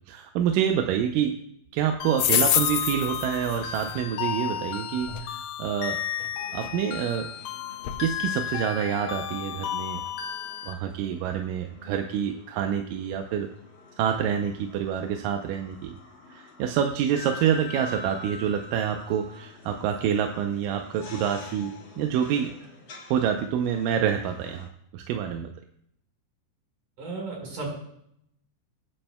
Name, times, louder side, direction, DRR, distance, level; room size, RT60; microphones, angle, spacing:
voice 1, 0.1-1.4 1.7-6.0 6.5-7.3 8.0-10.0 10.7-13.5 14.0-16.0 16.3-22.5 23.1-24.7 24.9-25.5, right 9 dB, 90° right, 4 dB, 2.3 m, -27 dB
sound 1, 2.0-10.7, left 9 dB, 70° left, 2.0 m, -34 dB
sound 2, 2.2-4.0 5.0-5.2 6.2-6.3 6.6-6.7 7.2-7.3 7.8-8.0, left 10 dB, 85° left, 1.4 m, -26 dB
sound 3, 6.3-24.7, left 4 dB, 45° left, 2.3 m, -47 dB
voice 2, 27.0-27.7, right 3 dB, 65° right, 0 dB, 5.9 m, -34 dB
24.5 x 8.7 x 2.2 m, 0.73 s
omnidirectional pair, 3.8 m